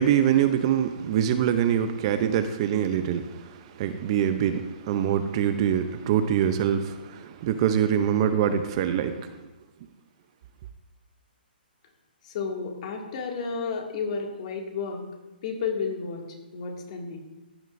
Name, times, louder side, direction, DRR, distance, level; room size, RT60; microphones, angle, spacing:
voice 1, 0.0-9.3, right 9 dB, 35° right, 9 dB, 0.6 m, -24 dB
voice 2, 12.2-15.1 15.4-16.3 16.5-17.2, left 5 dB, 40° left, 1 dB, 2.2 m, -32 dB
14.5 x 9.0 x 2.6 m, 1.1 s
hypercardioid pair, 150°, 6 cm